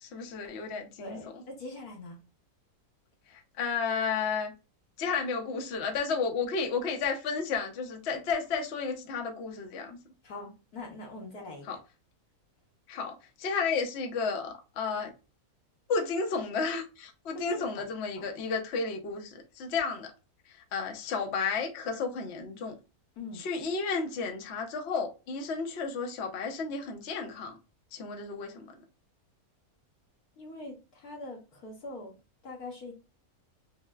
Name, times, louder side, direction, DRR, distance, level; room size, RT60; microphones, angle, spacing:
voice 1, 0.0-1.4 3.3-4.5 5.0-10.0 11.6-11.8 12.9-15.1 15.9-20.1 20.7-22.7 23.3-27.6 27.9-28.7, left 5 dB, 55° left, 0.9 m, -32 dB
voice 2, 1.0-2.2 10.2-11.6 17.5-17.8 18.2-18.3 23.2-23.4 30.4-32.1 32.4-32.9, left 2 dB, 80° left, 1.7 m, -43 dB
5.4 x 2.1 x 2.3 m
omnidirectional pair, 1.6 m